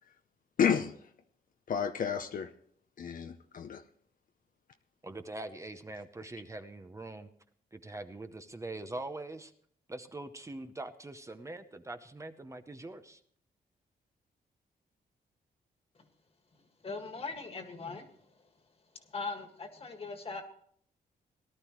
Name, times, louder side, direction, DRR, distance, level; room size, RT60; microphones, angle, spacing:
voice 1, 0.6-0.9 1.7-2.5 3.0-3.8, left 7 dB, 60° left, 7 dB, 0.7 m, -30 dB
voice 2, 5.0-7.3 7.7-9.5 9.9-13.2, right 2 dB, 20° right, 8 dB, 0.8 m, -43 dB
voice 3, 16.8-18.1 19.1-20.4, left 4 dB, 40° left, 5 dB, 1.9 m, -39 dB
18.5 x 12.0 x 3.1 m, 0.62 s
cardioid pair, 100°, 16 cm